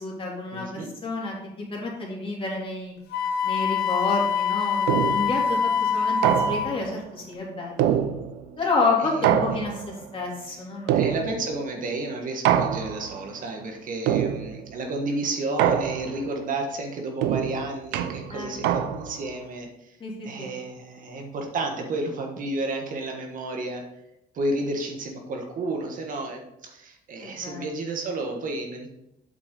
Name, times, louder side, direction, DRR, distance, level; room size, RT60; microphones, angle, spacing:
voice 1, 0.0-2.9 3.4-7.9 8.6-11.1 18.3-18.5 18.8-18.9 20.0-20.5 27.2-27.7, left 3 dB, 30° left, -3 dB, 3.0 m, -29 dB
voice 2, 0.5-0.9 9.0-9.3 10.5-10.6 10.9-20.0 20.2-23.8 24.3-29.0, right 2 dB, 50° right, 2 dB, 1.4 m, -31 dB
Wind instrument woodwind instrument, 3.1-6.7, left 6 dB, 75° left, 1.0 m, -24 dB
sound 1, 4.9-5.4 6.2-6.9 7.8-8.6 9.2-10.0 10.9-11.6 12.5-13.2 14.1-14.7 15.6-16.3 17.2-19.3, right 10 dB, 90° right, 0.6 m, -25 dB
8.0 x 6.1 x 3.9 m, 0.84 s
cardioid pair, 110°, 17 cm